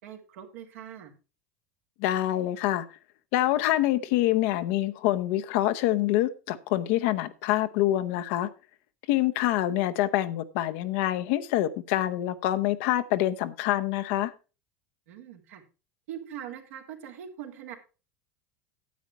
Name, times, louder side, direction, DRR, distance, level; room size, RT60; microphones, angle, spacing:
voice 1, 0.0-1.1 15.1-15.6 16.1-17.8, right 9 dB, 80° right, 3 dB, 2.3 m, -42 dB
voice 2, 2.0-2.8 3.3-8.5 9.1-14.3, left 14 dB, 70° left, 11 dB, 0.8 m, -26 dB
9.4 x 8.4 x 4.4 m, 0.33 s
hypercardioid pair, 100°, 7 cm